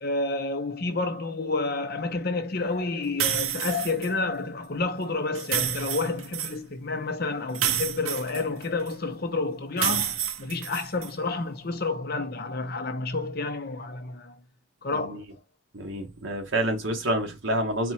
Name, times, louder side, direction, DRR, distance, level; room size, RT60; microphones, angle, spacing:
voice 1, 0.0-14.3 14.8-15.2, left 3 dB, 50° left, 0.8 m, -30 dB
sound 1, 3.2-4.1 5.3-6.5 7.5-8.9 9.8-11.1, right 10 dB, 90° right, 0.6 m, -29 dB
voice 2, 15.7-17.9, right 1 dB, 70° right, 1.4 m, -28 dB
4.2 x 2.5 x 4.3 m
head